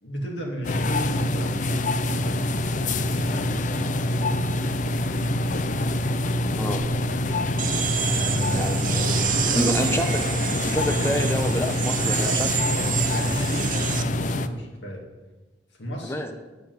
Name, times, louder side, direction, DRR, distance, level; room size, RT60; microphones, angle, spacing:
voice 1, 0.0-2.5 3.1-4.0 8.1-9.7 12.3-15.0 15.8-16.2, equal, 80° left, -1 dB, 2.5 m, -34 dB
sound 1, 0.6-14.5, left 1 dB, 45° left, 0.5 m, -25 dB
sound 2, 7.6-14.0, right 8 dB, 45° right, 0.8 m, -28 dB
voice 2, 8.6-9.0 9.5-10.2 10.6-12.5 16.0-16.3, equal, 15° left, 6 dB, 0.9 m, -27 dB
9.4 x 7.6 x 9.2 m, 1.2 s
head